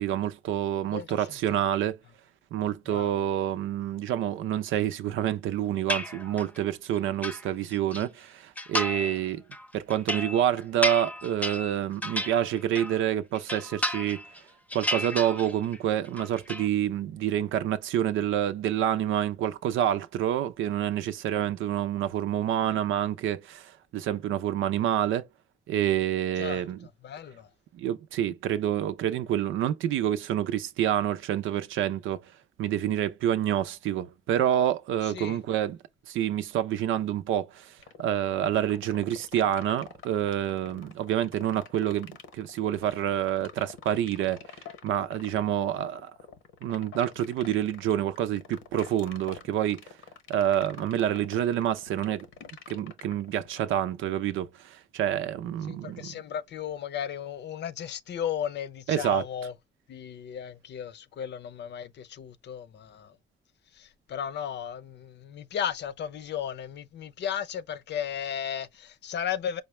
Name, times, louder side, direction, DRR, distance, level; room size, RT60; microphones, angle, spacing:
voice 1, 0.0-2.0 2.5-9.4 9.7-14.2 14.7-25.3 25.7-26.9 27.7-32.2 32.6-35.8 36.1-37.7 38.0-46.1 46.6-49.8 50.3-52.2 52.7-56.1 58.9-59.2, right 11 dB, 80° right, 0.6 m, -28 dB
voice 2, 0.9-1.3 2.9-3.2 26.4-26.6 27.0-27.5 35.0-35.4 55.7-59.5 59.9-63.2 63.7-69.6, left 9 dB, 60° left, 0.6 m, -35 dB
sound 1, 5.9-6.6 7.0-8.0 8.6-9.2 9.5-13.0 13.3-14.4 14.7-15.8 16.0-16.7, left 1 dB, 5° left, 0.5 m, -32 dB
sound 2, 37.8-53.8, left 7 dB, 85° left, 0.9 m, -46 dB
5.0 x 2.0 x 3.1 m
cardioid pair, 90°, 20 cm